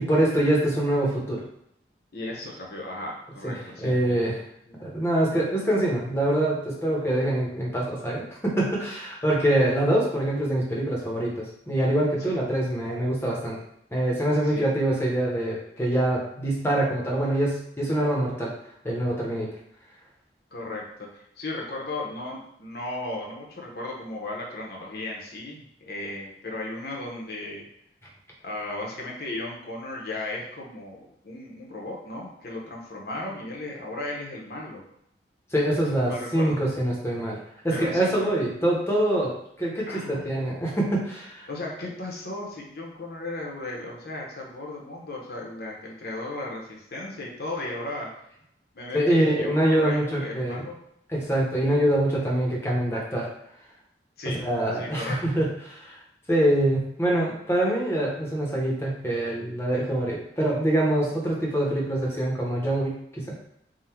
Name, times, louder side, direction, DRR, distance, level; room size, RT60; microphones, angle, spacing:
voice 1, 0.0-1.4 3.4-4.4 4.8-13.6 13.9-18.5 18.8-19.5 35.5-37.4 37.6-39.3 39.6-41.5 48.9-50.6 51.1-53.3 54.4-55.9 56.3-63.4, right 1 dB, 15° left, -3 dB, 0.9 m, -25 dB
voice 2, 2.1-4.3 4.6-4.8 12.2-12.4 14.4-14.7 20.5-20.8 21.1-27.7 28.4-31.0 31.2-34.8 35.9-36.6 37.7-38.3 39.9-40.3 41.5-48.1 48.7-50.8 54.2-54.4 54.7-55.2, left 2 dB, 60° left, -2 dB, 1.0 m, -35 dB
3.8 x 2.4 x 4.4 m, 0.75 s
head